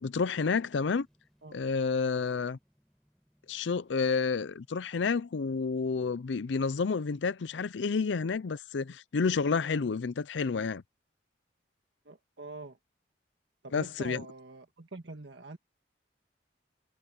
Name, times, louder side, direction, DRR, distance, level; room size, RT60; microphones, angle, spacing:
voice 1, 0.0-1.1 1.5-2.6 3.5-10.8 13.7-14.2, left 5 dB, 80° left, 0.5 m, -30 dB
sound 1, 0.9-9.5 9.8-9.9, equal, ahead, 6.2 m, -74 dB
voice 2, 12.0-12.8 13.6-15.6, right 2 dB, 75° right, 1.7 m, -44 dB
head